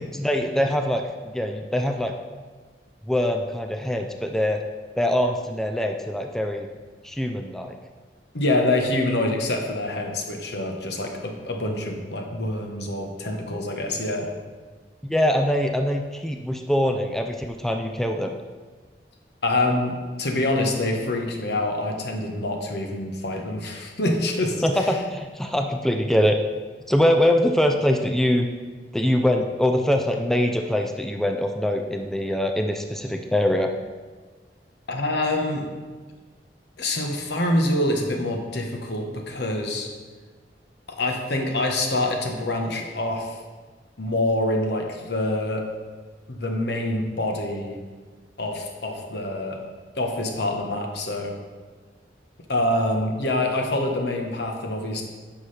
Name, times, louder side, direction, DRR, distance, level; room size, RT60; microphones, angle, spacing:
voice 1, 0.1-2.1 3.1-4.6 5.0-6.7 7.0-7.7 15.0-18.3 24.6-26.4 26.9-28.5 28.9-33.7, left 1 dB, ahead, 4 dB, 0.4 m, -23 dB
voice 2, 8.3-14.3 19.4-25.0 34.9-35.7 36.8-39.9 40.9-43.4 44.0-45.6 46.3-47.8 48.4-49.6 50.0-51.3 52.5-55.0, left 1 dB, 70° left, 2 dB, 1.1 m, -26 dB
9.7 x 6.1 x 3.3 m, 1.4 s
head